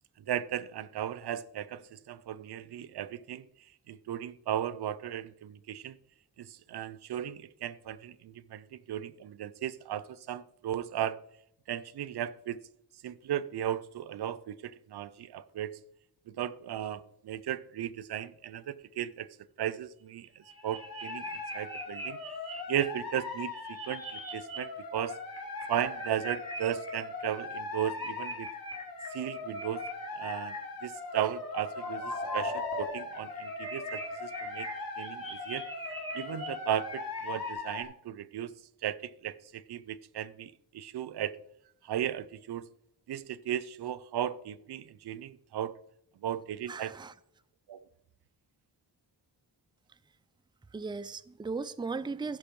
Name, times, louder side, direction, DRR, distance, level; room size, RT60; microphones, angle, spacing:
voice 1, 0.3-3.4 3.9-6.0 6.4-11.2 11.7-12.6 13.0-15.7 16.3-19.3 19.6-22.2 22.7-25.2 25.7-28.5 29.1-29.8 30.1-34.7 35.0-35.7 36.1-38.5 38.8-41.4 41.8-42.7 43.1-45.7 46.2-46.9 47.7-47.8, right 10 dB, 85° right, 0.6 m, -36 dB
sound 1, 20.2-22.8 23.3-24.6 24.8-26.9 27.5-30.6 31.3-32.8 33.1-37.5, equal, 35° right, 4.0 m, -41 dB
sound 2, 20.5-37.8, left 3 dB, 65° left, 3.8 m, -40 dB
voice 2, 46.7-47.1 50.7-52.4, right 4 dB, 10° right, 0.4 m, -37 dB
15.0 x 5.8 x 5.3 m
wide cardioid pair, 95°, 38 cm